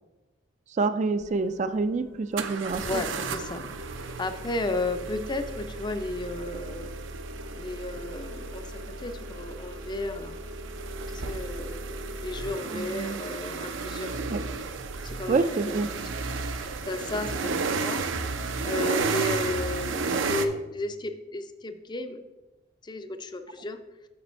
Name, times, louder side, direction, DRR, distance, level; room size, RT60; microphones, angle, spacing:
voice 1, 0.7-3.0 12.7-13.2 14.3-14.5 15.3-15.9, right 3 dB, 40° right, 11 dB, 0.3 m, -27 dB
sound 1, 1.2-1.3 2.4-20.5, right 4 dB, 75° right, 0.6 m, -33 dB
voice 2, 2.8-6.9 7.5-10.4 11.1-11.8 12.2-14.1 15.0-15.8 16.2-18.0 18.6-22.2 22.8-23.8, left 2 dB, 25° left, 8 dB, 0.5 m, -33 dB
6.9 x 6.7 x 4.3 m, 1.1 s
head